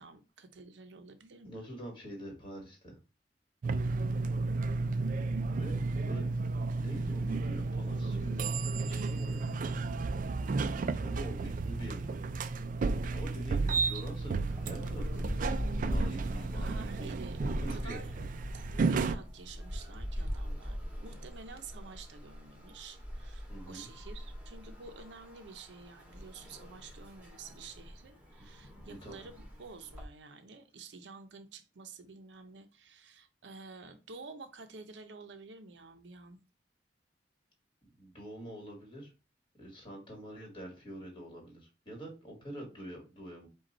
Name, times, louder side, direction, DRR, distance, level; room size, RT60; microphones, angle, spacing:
voice 1, 0.0-1.6 5.6-6.4 16.5-18.1 18.5-29.3 29.6-36.4, right 4 dB, 90° right, 8 dB, 0.6 m, -50 dB
voice 2, 1.4-3.0 5.5-6.3 6.7-9.7 11.0-12.2 13.1-15.2 15.5-18.3 23.5-23.9 28.9-29.2 38.0-39.1 39.6-43.5, right 1 dB, 30° left, 0 dB, 1.8 m, -46 dB
sound 1, 3.6-19.1, right 3 dB, 50° right, 0.3 m, -33 dB
sound 2, 14.5-30.0, equal, 10° right, 1.3 m, -41 dB
5.1 x 2.3 x 4.1 m, 0.30 s
head